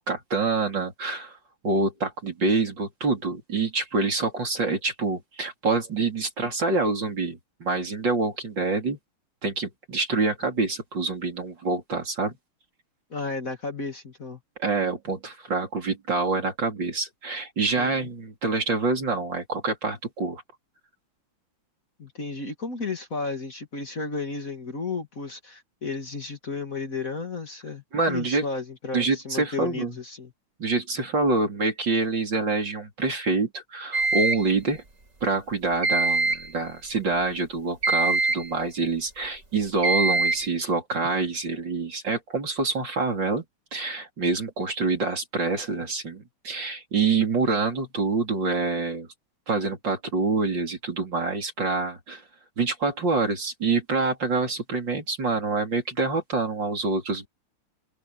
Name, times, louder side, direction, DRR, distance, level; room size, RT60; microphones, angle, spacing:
voice 1, 0.1-1.4 1.6-9.0 9.4-12.4 14.6-20.4 27.9-28.4 28.9-30.0 30.6-34.8 35.2-43.4 43.7-49.1 49.5-52.2 52.6-57.3, right 3 dB, 55° right, 4.6 m, -26 dB
voice 2, 13.1-14.4 17.6-18.1 22.0-30.3, left 4 dB, 40° left, 2.4 m, -33 dB
sound 1, 33.9-34.5 35.8-36.5 37.8-38.5 39.8-40.5, right 3 dB, 35° right, 4.7 m, -23 dB
open air
omnidirectional pair, 2.4 m